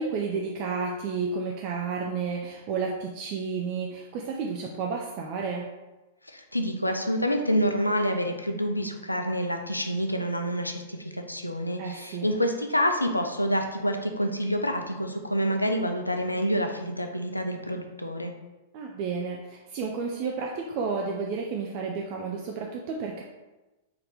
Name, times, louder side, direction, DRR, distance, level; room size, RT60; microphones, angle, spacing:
voice 1, 0.0-5.7 11.8-12.3 18.7-23.2, right 5 dB, 40° right, 0 dB, 0.4 m, -31 dB
voice 2, 6.3-18.3, equal, 85° left, 5 dB, 0.4 m, -27 dB
3.9 x 2.8 x 3.4 m, 1.1 s
figure-of-eight pair, 100°, 0 cm